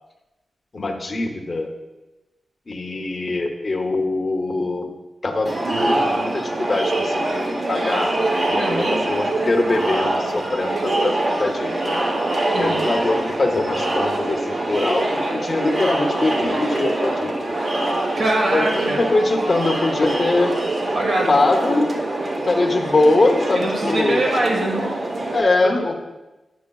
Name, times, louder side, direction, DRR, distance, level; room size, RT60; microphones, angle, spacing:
voice 1, 0.7-1.7 2.7-4.9 5.2-8.1 8.5-12.1 12.6-17.3 18.5-20.5 21.3-22.0 22.5-24.2 25.3-25.9, left 2 dB, 30° left, 1 dB, 0.7 m, -22 dB
Crowd, 5.5-25.4, right 2 dB, 40° right, 0.9 m, -24 dB
voice 2, 8.6-9.0 12.5-12.9 18.2-19.1 20.9-21.3 23.5-24.9 25.6-26.0, right 1 dB, 70° right, -2 dB, 1.4 m, -23 dB
10.5 x 6.3 x 2.3 m, 1.1 s
wide cardioid pair, 155°, 0 cm